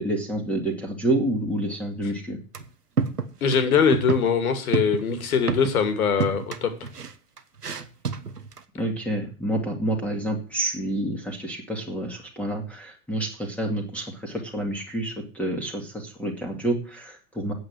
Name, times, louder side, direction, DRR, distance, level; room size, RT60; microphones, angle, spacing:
voice 1, 0.0-2.4 8.7-17.5, right 1 dB, 5° left, 0 dB, 2.2 m, -28 dB
sound 1, 2.5-2.7 3.0-3.6 3.9-4.3 4.7-5.9 6.2-8.6, right 5 dB, 85° right, 1.2 m, -29 dB
voice 2, 3.4-6.7, left 6 dB, 65° left, 9 dB, 2.5 m, -22 dB
8.7 x 8.1 x 7.7 m, 0.37 s
figure-of-eight pair, 95°, 45 cm